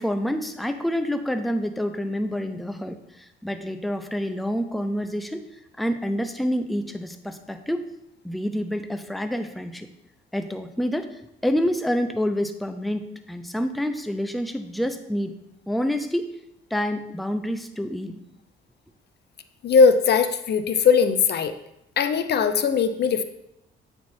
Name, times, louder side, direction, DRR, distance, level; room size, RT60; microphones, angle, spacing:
voice 1, 0.0-5.4 5.8-7.9 8.2-9.9 10.3-11.1 11.4-15.3 15.7-16.3 16.7-18.2, equal, ahead, 8 dB, 0.6 m, -27 dB
voice 2, 19.6-21.5 22.0-23.2, left 5 dB, 55° left, 10 dB, 0.6 m, -19 dB
8.4 x 4.5 x 4.2 m, 0.80 s
cardioid pair, 90°, 20 cm